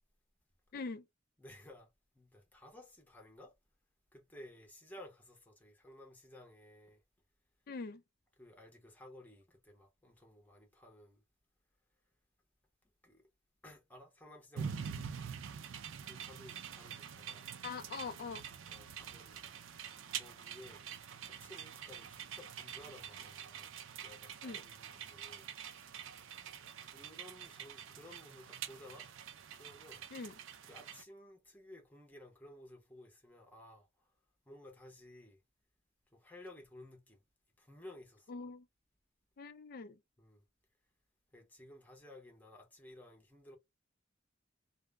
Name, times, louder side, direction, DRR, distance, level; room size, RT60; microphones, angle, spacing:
voice 1, 0.7-1.0 7.7-8.0 17.6-18.5 24.4-24.6 30.1-30.3 38.3-38.7 39.4-40.0, left 4 dB, 50° left, 0.4 m, -43 dB
voice 2, 1.4-1.9 2.1-3.5 4.1-7.0 8.4-11.2 13.0-13.2 13.6-15.0 16.0-17.5 18.5-19.5 20.1-20.8 21.3-23.7 24.0-25.5 26.6-29.1 29.5-30.1 30.6-33.9 34.5-35.4 36.1-37.2 37.6-38.3 40.2-40.4 41.3-43.6, left 1 dB, 10° left, 0.7 m, -56 dB
sound 1, 14.5-31.0, right 8 dB, 80° right, 0.4 m, -46 dB
2.0 x 2.0 x 3.3 m
head